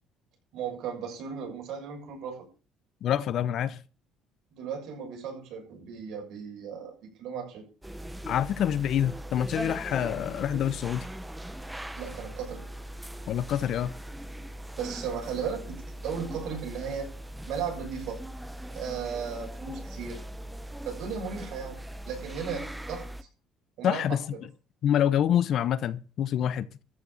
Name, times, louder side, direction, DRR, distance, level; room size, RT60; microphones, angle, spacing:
voice 1, 0.5-2.5 4.5-6.9 7.2-7.6 12.0-12.6 14.8-17.1 17.5-18.2 18.7-20.2 20.8-21.8 22.1-23.1 23.8-24.2, right 6 dB, 65° right, 6.9 m, -36 dB
voice 2, 3.0-3.8 8.2-11.1 13.3-13.9 23.8-24.2 24.8-26.7, left 10 dB, 55° left, 0.9 m, -26 dB
sound 1, 7.8-23.2, right 1 dB, 5° right, 0.9 m, -40 dB
14.0 x 6.8 x 7.4 m
cardioid pair, 120°, 0 cm